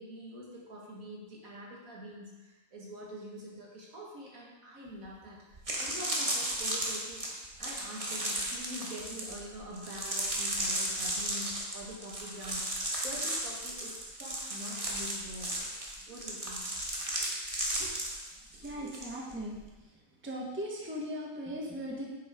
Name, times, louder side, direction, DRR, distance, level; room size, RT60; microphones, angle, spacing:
voice 1, 0.0-7.2 7.6-15.7 16.1-16.8 17.2-17.3 17.7-17.9, equal, 70° right, -3 dB, 2.1 m, -45 dB
sound 1, 5.0-5.1 5.5-19.1 19.3-19.7, right 1 dB, 25° right, 1.3 m, -35 dB
voice 2, 18.6-19.6 20.2-22.2, equal, 10° right, -3 dB, 1.2 m, -38 dB
9.2 x 6.6 x 3.7 m, 1.2 s
omnidirectional pair, 1.5 m